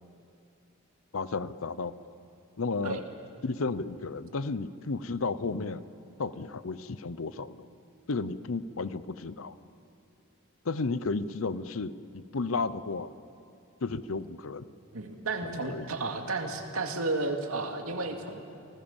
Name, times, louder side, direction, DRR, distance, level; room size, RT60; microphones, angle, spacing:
voice 1, 1.1-1.9 2.6-3.0 3.4-5.9 6.2-7.7 8.1-9.6 10.6-13.1 13.8-14.6 15.4-15.9, left 3 dB, 70° left, 15 dB, 0.7 m, -33 dB
voice 2, 14.9-18.4, right 3 dB, 90° right, 4 dB, 2.3 m, -32 dB
29.5 x 19.0 x 7.2 m, 2.6 s
head